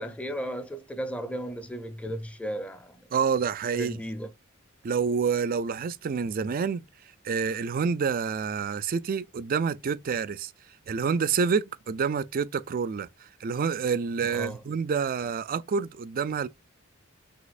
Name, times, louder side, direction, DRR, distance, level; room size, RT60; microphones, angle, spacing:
voice 1, 0.0-3.1 3.7-4.3 14.3-14.6, equal, 5° left, 0.6 m, -35 dB
voice 2, 3.1-3.9 4.8-6.8 7.2-10.5 10.9-16.5, right 6 dB, 45° right, 0.4 m, -28 dB
6.3 x 2.9 x 2.5 m
head